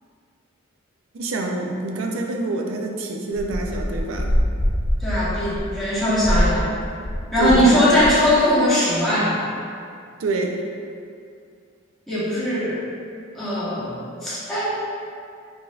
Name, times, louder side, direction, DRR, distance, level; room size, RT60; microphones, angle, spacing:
voice 1, 1.1-4.3 7.4-8.1 10.2-10.6, right 2 dB, 70° right, 1 dB, 0.4 m, -26 dB
sound 1, 3.3-7.7 8.0-8.3, equal, 25° left, 0.5 m, -24 dB
voice 2, 5.0-6.7 7.3-9.4 12.1-12.8 13.3-14.7, equal, ahead, -11 dB, 1.0 m, -20 dB
4.7 x 2.6 x 2.4 m, 2.4 s
head